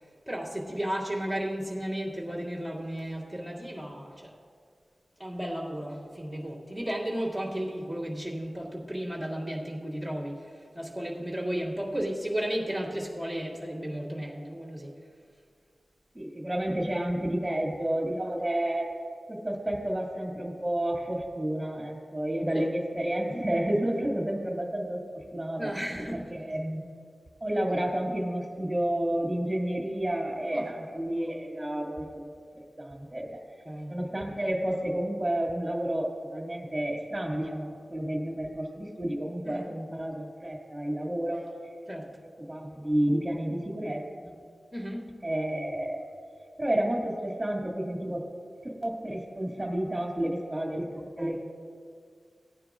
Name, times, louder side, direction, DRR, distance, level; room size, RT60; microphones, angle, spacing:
voice 1, 0.3-4.3 5.2-14.9 21.6-21.7 22.5-22.7 25.6-26.3 30.5-30.7 33.6-33.9 39.4-39.7 41.9-42.2 44.7-45.2 51.2-51.4, equal, 5° left, -6 dB, 2.3 m, -34 dB
voice 2, 16.1-19.0 19.3-25.0 25.3-25.7 26.1-26.9 27.4-32.3 32.8-33.3 33.9-41.5 42.5-44.4 45.2-46.0 46.6-48.2 48.6-51.4, right 1 dB, 10° right, -1 dB, 2.2 m, -30 dB
17.0 x 9.5 x 2.5 m, 2.1 s
wide cardioid pair, 110°, 0 cm